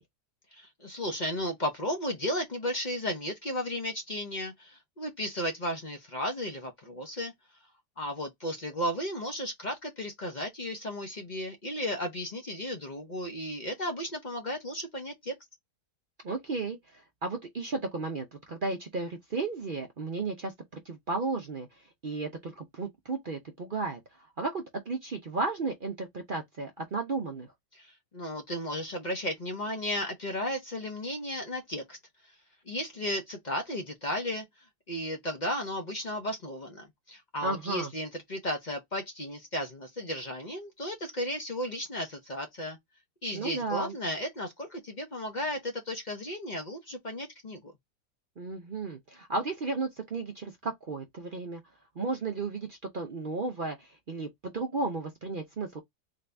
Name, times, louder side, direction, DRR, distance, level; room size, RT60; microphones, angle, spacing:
voice 1, 0.5-7.3 8.0-15.3 27.7-32.0 32.7-34.4 34.9-42.8 43.2-47.7, equal, 40° left, 0.7 m, -34 dB
voice 2, 16.2-20.5 20.8-21.7 22.0-24.0 24.4-27.5 37.4-37.9 43.3-43.9 48.4-51.6 52.0-55.8, right 3 dB, 55° right, 0.6 m, -34 dB
3.9 x 2.6 x 3.3 m
omnidirectional pair, 1.8 m